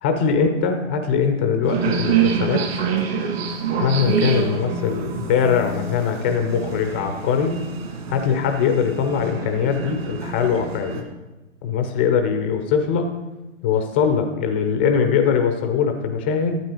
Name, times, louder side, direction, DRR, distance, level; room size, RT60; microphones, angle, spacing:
voice 1, 0.0-2.6 3.8-7.5 8.1-11.0 11.6-13.1 13.6-16.6, left 6 dB, 10° left, 6 dB, 0.3 m, -21 dB
sound 1, 1.6-11.0, right 7 dB, 50° right, 2.2 m, -26 dB
12.0 x 8.7 x 4.7 m, 1.1 s
hypercardioid pair, 125°, 38 cm